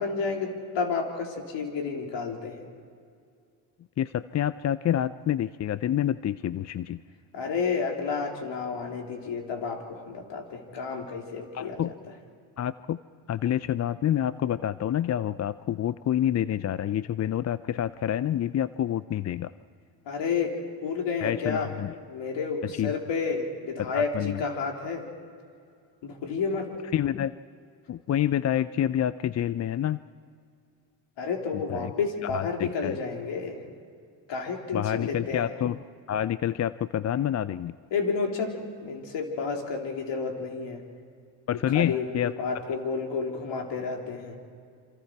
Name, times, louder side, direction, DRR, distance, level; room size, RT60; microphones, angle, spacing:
voice 1, 0.0-2.6 7.3-11.8 20.1-20.5 20.8-21.7 22.1-25.0 26.0-26.7 31.2-33.6 34.3-35.5 37.9-38.5 38.8-40.8 41.5-44.4, left 5 dB, 65° left, 1 dB, 3.8 m, -31 dB
voice 2, 4.0-7.0 11.5-11.9 12.6-13.0 13.3-19.5 21.2-21.9 22.6-22.9 23.8-24.4 26.9-27.4 27.9-30.0 31.7-31.9 32.3-32.9 34.7-35.8 36.1-37.8 41.5-42.3, left 11 dB, 35° left, 15 dB, 0.5 m, -28 dB
27.5 x 25.5 x 4.7 m, 2.3 s
supercardioid pair, 75°, 46 cm